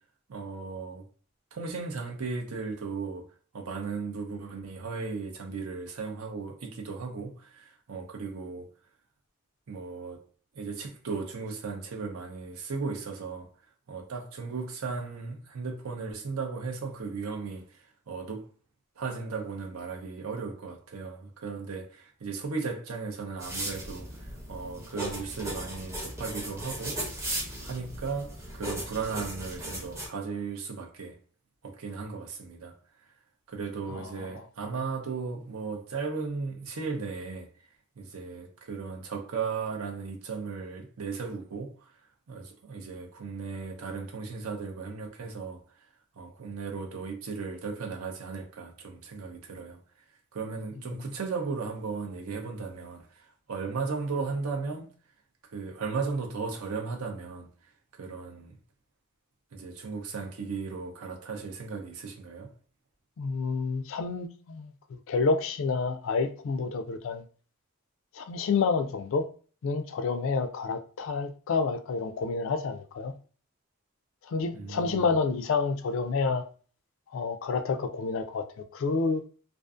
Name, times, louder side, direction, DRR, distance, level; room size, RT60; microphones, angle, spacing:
voice 1, 0.3-1.0 1.5-3.3 3.5-8.7 9.7-10.2 10.5-13.5 13.9-18.5 19.0-27.4 27.6-31.2 31.6-32.8 33.5-37.5 38.0-41.9 42.3-45.6 46.2-49.8 50.3-54.9 55.4-57.5 57.9-58.6 59.5-62.5 74.5-75.1, right 4 dB, 80° right, 0.6 m, -36 dB
sound 1, 23.4-30.1, right 1 dB, 15° right, 0.6 m, -37 dB
voice 2, 33.9-34.3 50.9-51.0 63.2-67.3 68.1-69.2 69.6-73.1 74.2-76.4 77.1-78.4 78.7-79.2, left 4 dB, 60° left, 0.3 m, -29 dB
2.5 x 2.4 x 2.3 m
head